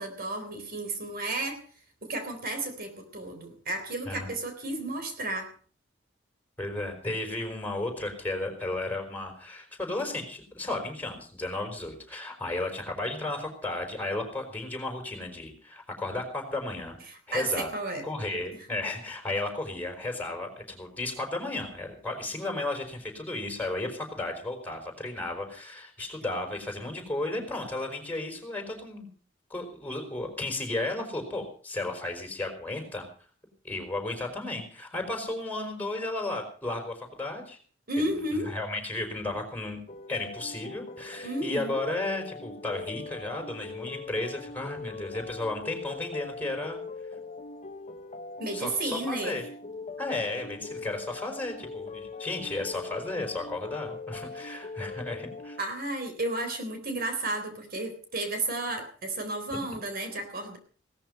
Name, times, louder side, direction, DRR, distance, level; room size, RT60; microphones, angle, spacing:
voice 1, 0.0-1.6 2.0-5.5 17.1-18.0 37.9-38.5 41.2-41.8 48.4-49.4 55.6-60.6, right 2 dB, 50° right, 7 dB, 3.8 m, -32 dB
voice 2, 6.6-17.0 17.3-17.7 18.0-29.1 29.5-33.1 33.6-37.6 38.3-39.8 40.1-46.8 48.5-49.5 50.0-55.6, left 2 dB, 10° left, 4 dB, 5.0 m, -34 dB
sound 1, 39.9-55.6, left 3 dB, 35° left, 1.0 m, -41 dB
17.5 x 14.0 x 5.5 m, 0.43 s
head